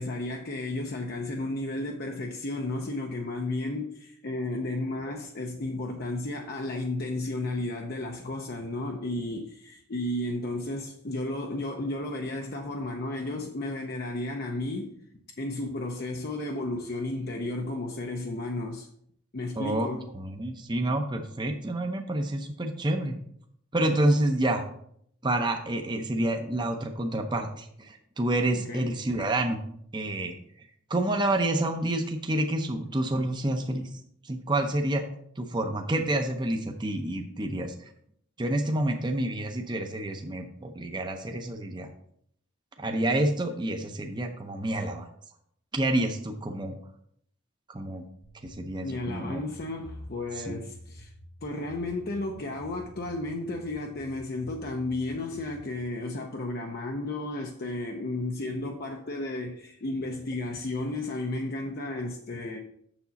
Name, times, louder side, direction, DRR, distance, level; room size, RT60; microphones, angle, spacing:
voice 1, 0.0-14.9 15.4-18.9 19.3-20.1 28.5-29.2 48.8-51.1 51.4-62.6, left 2 dB, 50° left, 0.6 m, -33 dB
voice 2, 19.6-19.9 20.1-23.2 23.7-24.6 25.2-29.6 29.9-30.3 30.9-33.9 34.2-35.0 35.4-37.7 38.4-41.9 42.8-45.1 45.7-46.8 47.7-48.1 48.4-49.4 50.4-50.6, right 1 dB, 20° right, 0.6 m, -28 dB
sound 1, 48.2-55.6, equal, 65° left, 1.7 m, -49 dB
7.0 x 6.8 x 4.0 m
head